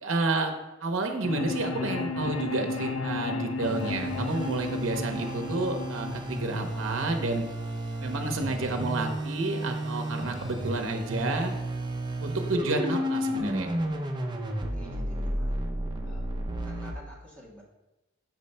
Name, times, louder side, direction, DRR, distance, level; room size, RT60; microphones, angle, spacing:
voice 1, 0.0-0.5 0.8-7.4 8.0-11.6 12.2-13.7, right 2 dB, 70° right, 4 dB, 0.7 m, -30 dB
sound 1, 1.2-7.2, left 3 dB, 70° left, 0.5 m, -34 dB
sound 2, 3.6-16.9, right 1 dB, 20° right, 0.6 m, -32 dB
voice 2, 14.7-15.6 16.0-16.2 16.6-17.6, equal, 5° left, -4 dB, 1.4 m, -50 dB
6.2 x 3.2 x 5.4 m, 1.0 s
head